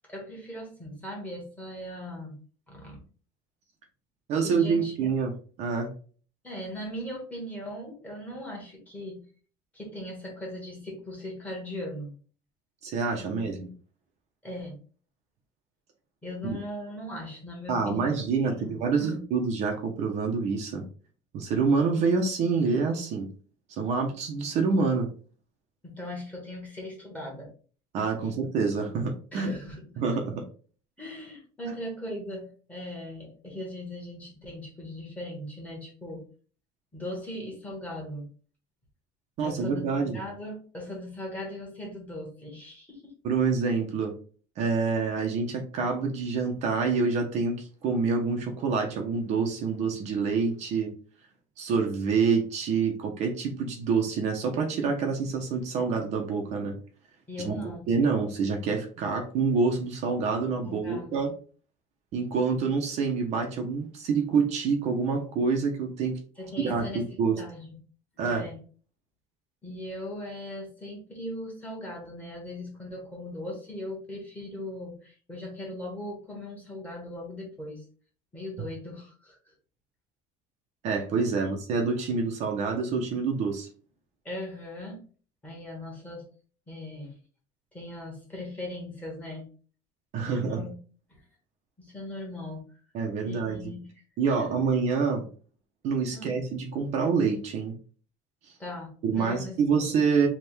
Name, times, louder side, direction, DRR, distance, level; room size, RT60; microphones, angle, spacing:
voice 1, 0.1-2.4 2.7-3.0 4.4-4.9 6.4-9.2 9.7-12.1 13.2-13.6 14.4-14.8 16.2-19.2 25.8-27.5 29.3-29.8 31.0-36.2 36.9-38.3 39.4-43.1 57.3-57.9 60.5-61.2 66.4-67.8 68.2-68.6 69.6-77.8 78.3-79.5 81.3-81.5 84.2-85.1 85.4-86.3 86.7-87.2 87.7-89.5 90.1-90.7 91.1-91.2 91.8-92.8 93.2-93.9 94.3-94.6 96.1-96.4 98.6-99.8, left 1 dB, 10° left, -2 dB, 1.4 m, -39 dB
voice 2, 4.3-5.9 12.8-13.7 16.4-16.6 17.7-20.8 21.3-23.3 23.7-25.1 27.9-29.6 30.0-30.4 31.6-31.7 39.4-40.2 43.2-44.1 44.6-50.9 51.6-56.7 57.4-61.3 62.1-66.2 66.6-67.4 68.2-68.5 80.8-83.7 90.1-90.6 92.9-93.7 94.2-95.2 95.8-97.7 99.0-100.3, right 5 dB, 45° right, 2 dB, 0.7 m, -27 dB
3.4 x 2.4 x 4.4 m, 0.41 s
cardioid pair, 160°, 16 cm